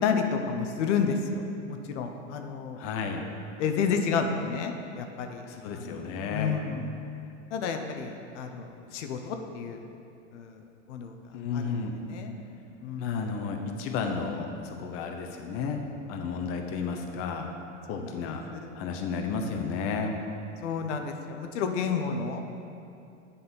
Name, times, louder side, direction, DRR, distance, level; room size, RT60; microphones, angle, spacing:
voice 1, 0.0-2.8 3.6-5.5 5.7-6.0 6.3-6.9 7.5-9.8 10.3-10.6 10.9-11.1 11.5-12.3 12.8-13.3 17.9-18.1 18.5-18.7 20.6-22.4, left 5 dB, 80° left, 5 dB, 0.8 m, -31 dB
voice 2, 2.8-3.2 5.5-6.5 11.3-11.9 13.0-15.8 16.1-17.5 17.9-18.4 18.7-20.1, left 5 dB, 40° left, 3 dB, 0.7 m, -32 dB
7.8 x 4.1 x 5.4 m, 2.6 s
supercardioid pair, 135°, 35 cm